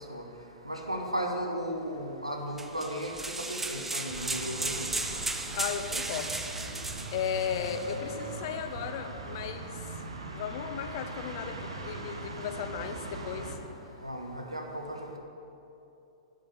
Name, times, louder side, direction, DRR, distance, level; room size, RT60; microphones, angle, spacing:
voice 1, 0.7-3.1 3.5-4.9 14.0-15.2, equal, 85° right, 3 dB, 1.1 m, -35 dB
sound 1, 2.6-8.0, right 2 dB, 10° right, 0.6 m, -35 dB
sound 2, 4.1-13.5, right 3 dB, 70° right, 1.1 m, -41 dB
voice 2, 5.5-6.4 7.1-9.9 10.3-13.9, left 8 dB, 45° left, 8 dB, 0.7 m, -36 dB
8.3 x 6.6 x 6.9 m, 2.9 s
figure-of-eight pair, 105°, 3 cm